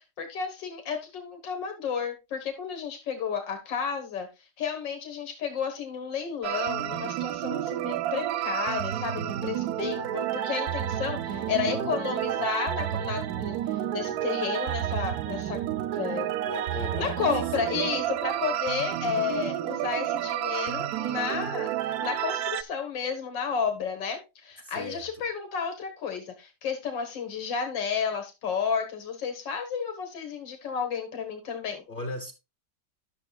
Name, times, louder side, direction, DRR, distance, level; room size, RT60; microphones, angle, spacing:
voice 1, 0.0-15.6 15.9-16.3 17.0-31.8, left 6 dB, 85° left, 2.1 m, -32 dB
sound 1, 6.4-22.6, right 12 dB, 70° right, 1.0 m, -30 dB
voice 2, 11.3-12.5 16.4-17.7 24.6-25.2 31.9-32.3, left 3 dB, 35° left, 1.0 m, -39 dB
11.5 x 6.8 x 2.3 m
omnidirectional pair, 1.9 m